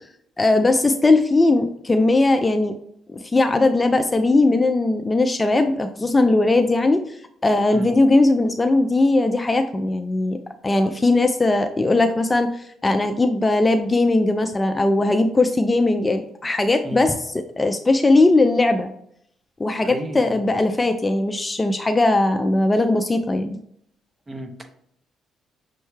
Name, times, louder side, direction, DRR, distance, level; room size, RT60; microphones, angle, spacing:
voice 1, 0.4-2.8 3.1-7.0 7.4-10.4 10.6-18.9 19.6-23.6, left 2 dB, 20° left, 7 dB, 0.3 m, -19 dB
voice 2, 19.8-20.4 24.3-24.7, right 1 dB, 20° right, 6 dB, 0.7 m, -33 dB
6.2 x 2.2 x 3.1 m, 0.70 s
cardioid pair, 90°, 0 cm